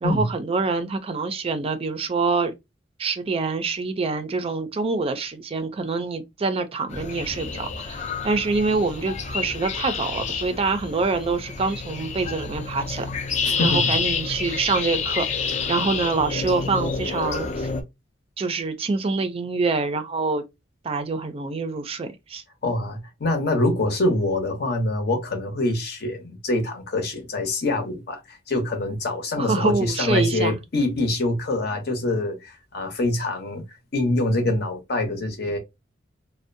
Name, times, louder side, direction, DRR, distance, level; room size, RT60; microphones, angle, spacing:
voice 1, 0.0-2.5 3.0-17.7 18.4-20.4 20.8-22.4 29.4-30.6, right 4 dB, 30° right, 0.4 m, -26 dB
sound 1, 6.9-17.8, left 5 dB, 40° left, 0.4 m, -29 dB
voice 2, 13.6-14.0 22.6-33.6 33.9-35.6, left 2 dB, 60° left, 0.8 m, -25 dB
2.5 x 2.0 x 2.5 m
head